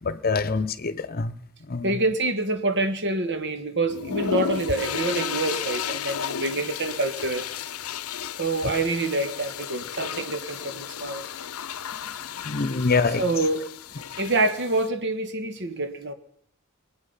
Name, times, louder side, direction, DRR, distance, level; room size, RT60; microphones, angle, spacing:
voice 1, 0.0-1.3 1.7-2.0 12.4-13.2, left 4 dB, 45° left, 0.9 m, -25 dB
voice 2, 1.8-7.5 8.4-11.2 13.2-13.7 14.2-16.1, right 2 dB, 55° right, 1.7 m, -26 dB
Toilet Flush, 3.9-14.9, left 7 dB, 90° left, 0.7 m, -33 dB
23.5 x 8.9 x 5.7 m
head